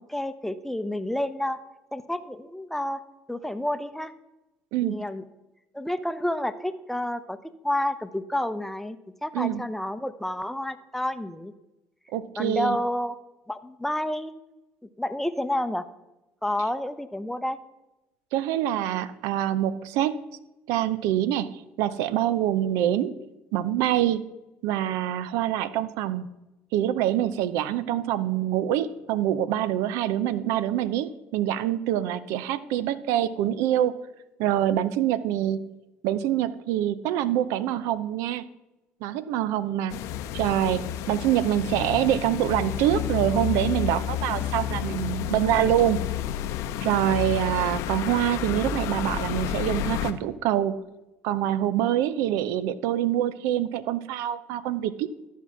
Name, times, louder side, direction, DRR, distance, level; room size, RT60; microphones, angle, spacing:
voice 1, 0.0-1.6 1.9-3.0 3.3-4.1 4.8-5.2 5.7-7.4 7.6-11.5 12.4-13.2 13.5-14.3 15.0-15.9 16.4-17.6 35.3-35.4, left 1 dB, 5° left, 11 dB, 0.7 m, -29 dB
voice 2, 4.7-5.0 9.3-9.6 12.1-12.8 18.3-20.2 20.7-23.2 23.5-24.2 24.6-26.3 26.7-33.9 34.4-35.7 36.0-38.4 39.0-40.1 40.3-46.0 46.8-50.8 51.2-55.1, right 12 dB, 75° right, 16 dB, 0.5 m, -25 dB
sound 1, 39.9-50.1, left 10 dB, 70° left, 0.7 m, -30 dB
13.0 x 4.6 x 5.8 m, 1.0 s
supercardioid pair, 75°, 5 cm